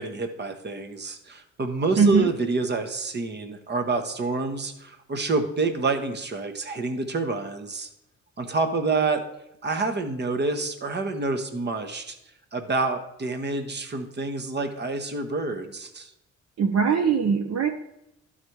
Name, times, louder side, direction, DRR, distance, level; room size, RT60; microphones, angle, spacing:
voice 1, 0.0-7.9 8.4-9.2 9.6-12.2 12.5-16.1, right 3 dB, 35° right, 7 dB, 1.2 m, -28 dB
voice 2, 2.0-2.3 16.6-17.7, right 5 dB, 55° right, 4 dB, 0.8 m, -21 dB
12.0 x 4.2 x 4.6 m, 0.83 s
cardioid pair, 90°, 30 cm